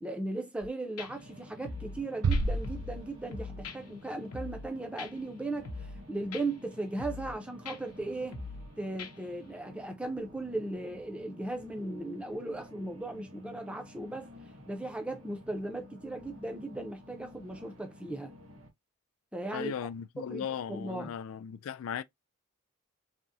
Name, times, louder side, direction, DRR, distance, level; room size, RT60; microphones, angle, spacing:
voice 1, 0.0-8.4 8.8-14.3 14.7-18.4 19.3-19.7 20.2-21.1, right 2 dB, 5° right, 0.4 m, -37 dB
sound 1, 0.6-0.7 1.0-1.1 1.6-2.0 2.3-3.0 3.3-3.8 4.3-4.7 5.0-5.1 5.6-6.0 6.3-6.4 7.0-7.4 7.7-7.8 8.3-8.7 9.0-9.1, left 3 dB, 90° left, 0.7 m, -41 dB
sound 2, 1.1-18.7, left 1 dB, 60° right, 0.8 m, -52 dB
sound 3, 2.2-3.8, right 3 dB, 80° right, 0.4 m, -31 dB
voice 2, 19.5-22.0, left 8 dB, 65° left, 0.3 m, -37 dB
3.4 x 2.0 x 2.6 m
head